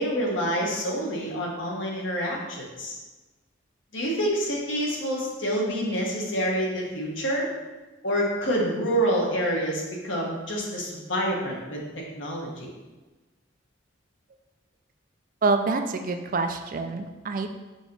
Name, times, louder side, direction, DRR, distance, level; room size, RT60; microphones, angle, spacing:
voice 1, 0.0-2.9 3.9-7.5 8.0-11.8 12.2-12.7, equal, 70° left, -3 dB, 1.5 m, -27 dB
voice 2, 15.4-17.5, right 3 dB, 45° right, 6 dB, 0.4 m, -26 dB
6.1 x 3.0 x 5.4 m, 1.2 s
head